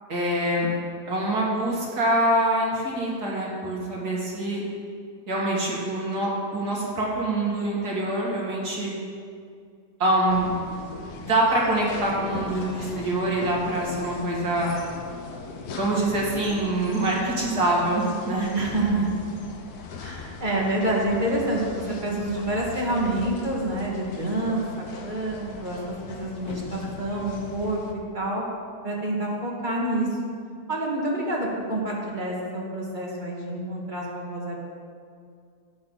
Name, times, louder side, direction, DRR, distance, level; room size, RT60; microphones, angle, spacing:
voice 1, 0.1-0.7 1.1-4.6 5.3-8.9 10.0-10.5 11.1-14.7 15.8-18.5, right 1 dB, 65° right, -5 dB, 2.8 m, -25 dB
sound 1, 10.3-27.9, left 4 dB, 65° left, 1.4 m, -39 dB
voice 2, 18.5-19.3 20.0-27.8 28.1-28.4 28.8-30.1 30.7-34.6, right 1 dB, 30° right, -3 dB, 1.8 m, -27 dB
13.0 x 8.7 x 4.0 m, 2.3 s
omnidirectional pair, 1.8 m